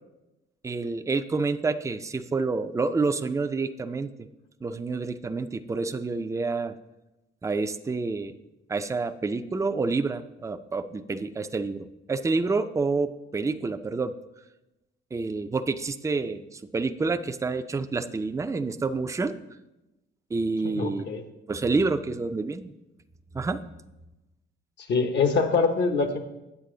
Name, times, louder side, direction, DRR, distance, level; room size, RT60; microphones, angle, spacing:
voice 1, 0.6-4.1 4.6-6.7 7.4-8.3 8.7-14.1 15.1-19.4 20.3-21.0 21.5-22.7 23.3-23.6, right 3 dB, 15° right, 10 dB, 0.4 m, -28 dB
voice 2, 20.6-21.2 24.9-26.2, left 4 dB, 60° left, 6 dB, 1.1 m, -24 dB
8.3 x 7.9 x 3.8 m, 0.97 s
cardioid pair, 90°, 20 cm